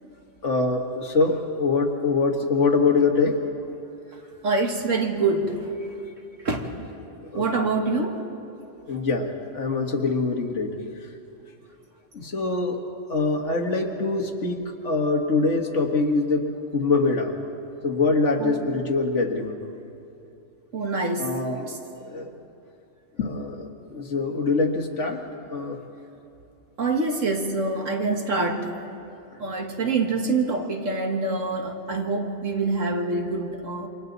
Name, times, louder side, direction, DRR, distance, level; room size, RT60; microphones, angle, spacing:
voice 1, 0.4-3.4 7.3-7.5 8.9-10.8 12.1-12.8 13.1-17.3 17.8-19.6 21.2-21.7 22.0-22.3 23.2-25.2 25.5-25.8, left 3 dB, 70° left, 2 dB, 2.0 m, -24 dB
voice 2, 4.4-5.7 6.4-6.8 7.3-8.2 18.4-18.7 20.7-21.4 21.6-21.8 26.8-28.9 29.4-33.9, right 3 dB, 85° right, 2 dB, 2.1 m, -25 dB
28.0 x 26.0 x 4.0 m, 2.7 s
omnidirectional pair, 1.3 m